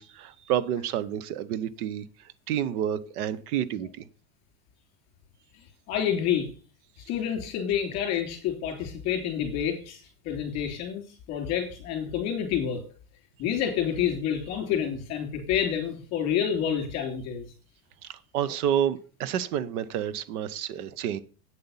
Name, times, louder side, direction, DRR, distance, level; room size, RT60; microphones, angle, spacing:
voice 1, 0.0-2.0 2.5-4.1 18.3-21.2, right 10 dB, 75° right, 17 dB, 0.9 m, -29 dB
voice 2, 5.9-6.5 7.1-11.0 11.3-12.8 13.4-17.5, left 9 dB, 35° left, 2 dB, 3.4 m, -28 dB
8.7 x 7.7 x 5.6 m, 0.38 s
supercardioid pair, 175°, 46 cm